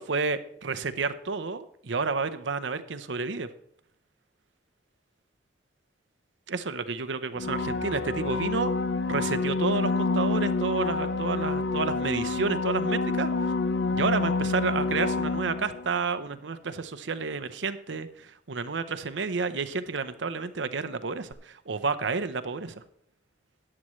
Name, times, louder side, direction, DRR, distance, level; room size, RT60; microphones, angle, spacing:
voice 1, 0.0-3.5 6.5-8.7 9.1-13.3 13.9-22.8, right 4 dB, 80° right, 10 dB, 0.7 m, -30 dB
sound 1, 7.4-16.0 21.3-21.4, left 3 dB, 75° left, 0.5 m, -28 dB
13.5 x 9.8 x 3.1 m, 0.68 s
head